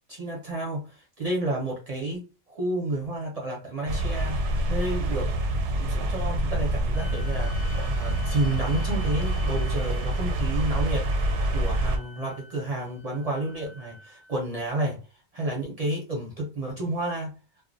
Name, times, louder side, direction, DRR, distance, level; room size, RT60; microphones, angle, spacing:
voice 1, 0.1-4.4 4.7-5.3 5.7-15.0 15.3-17.3, right 1 dB, 45° right, 0.6 m, -31 dB
sound 1, 3.9-12.0, right 1 dB, 85° right, 0.9 m, -26 dB
sound 2, 6.9-14.4, left 6 dB, 75° left, 0.8 m, -48 dB
2.3 x 2.1 x 2.5 m
omnidirectional pair, 1.2 m